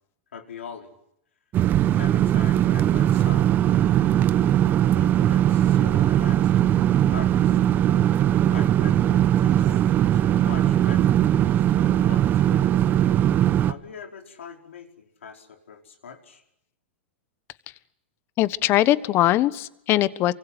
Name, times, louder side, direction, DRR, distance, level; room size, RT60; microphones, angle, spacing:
voice 1, 0.3-0.9 2.0-4.2 5.0-7.8 8.5-9.8 10.1-12.7 13.7-16.4, left 6 dB, 85° left, 3 dB, 4.9 m, -42 dB
sound 1, 1.5-13.7, right 11 dB, 30° right, 1.0 m, -20 dB
voice 2, 18.4-20.3, left 15 dB, 35° left, 16 dB, 1.3 m, -21 dB
28.0 x 24.5 x 8.1 m, 0.78 s
hypercardioid pair, 125°, 7 cm